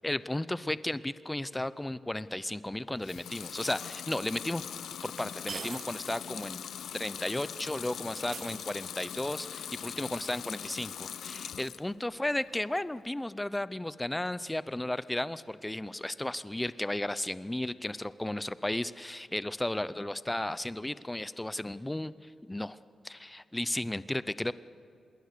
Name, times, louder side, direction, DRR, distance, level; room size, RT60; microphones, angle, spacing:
voice 1, 0.0-4.6 5.0-6.6 6.9-22.8 23.0-24.5, left 1 dB, 10° left, 16 dB, 0.5 m, -34 dB
Water tap faucet / Sink (filling or washing) / Liquid, 3.0-11.9 12.3-13.0, left 8 dB, 85° left, 0.7 m, -41 dB
sound 1, 4.1-4.2 5.5-6.2 6.5-6.6 8.3-9.2, right 6 dB, 55° right, 0.7 m, -43 dB
26.0 x 21.5 x 6.7 m, 2.6 s
wide cardioid pair, 120°, 0 cm